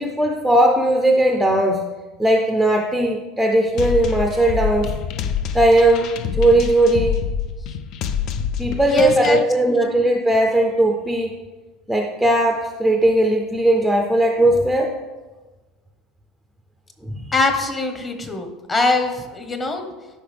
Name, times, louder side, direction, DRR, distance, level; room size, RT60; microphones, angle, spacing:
voice 1, 0.0-1.8 2.2-4.9 5.5-7.2 8.6-11.3 11.9-15.0 17.0-17.2, right 1 dB, ahead, 2 dB, 0.6 m, -18 dB
sound 1, 3.8-9.4, left 7 dB, 45° left, 0.5 m, -26 dB
voice 2, 8.9-9.4 9.6-10.0 17.3-19.9, left 2 dB, 20° left, 6 dB, 1.1 m, -23 dB
12.5 x 5.6 x 3.4 m, 1.2 s
supercardioid pair, 150°, 0 cm